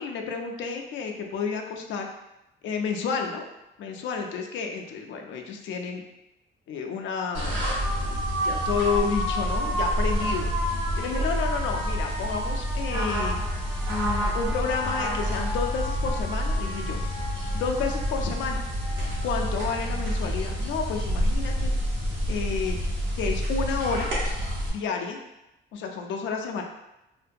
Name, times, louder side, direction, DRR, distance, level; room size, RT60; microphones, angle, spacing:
voice 1, 0.0-2.1 2.6-3.4 3.8-6.0 6.7-7.6 8.0-10.5 11.0-13.4 13.9-17.0 17.5-18.6 19.2-21.7 22.3-22.8 23.2-24.1 24.7-25.2 25.7-26.6, left 5 dB, 70° left, 3 dB, 0.4 m, -30 dB
sound 1, 7.3-24.7, equal, 70° right, 0.9 m, -28 dB
2.5 x 2.2 x 2.6 m, 0.92 s
cardioid pair, 90°, 20 cm